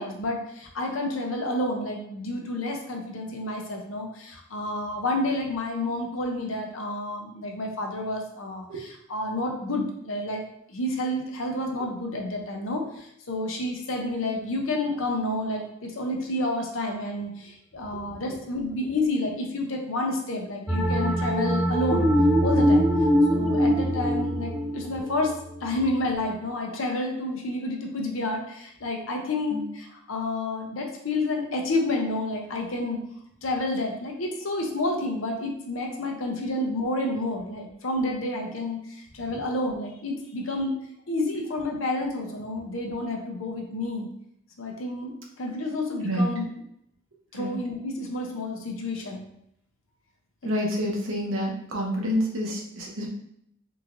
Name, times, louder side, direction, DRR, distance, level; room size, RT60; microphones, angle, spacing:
voice 1, 0.0-10.4 10.7-22.1 22.4-22.9 23.3-25.3 25.6-33.0 33.4-38.8 39.1-40.8 41.1-44.1 44.6-45.1 45.4-46.4 47.3-49.2 50.4-50.5, left 2 dB, 80° left, 2 dB, 0.7 m, -29 dB
sound 1, 20.7-26.0, equal, ahead, 0.3 m, -23 dB
voice 2, 50.4-53.1, equal, 85° right, -1 dB, 0.9 m, -28 dB
3.7 x 3.1 x 2.6 m, 0.74 s
head